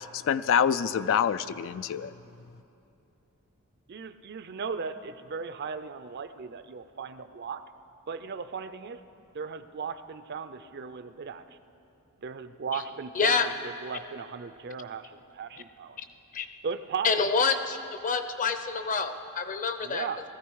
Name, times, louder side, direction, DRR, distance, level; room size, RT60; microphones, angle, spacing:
voice 1, 0.0-2.1, left 8 dB, 60° left, 13 dB, 0.3 m, -26 dB
voice 2, 3.9-7.6 8.1-9.0 9.3-11.4 12.2-16.0 16.6-17.1 19.8-20.2, right 5 dB, 50° right, 11 dB, 0.5 m, -37 dB
voice 3, 13.1-13.5 16.3-16.5 17.0-17.8 18.0-20.1, left 5 dB, 35° left, 9 dB, 0.7 m, -27 dB
19.5 x 14.0 x 4.7 m, 2.7 s
head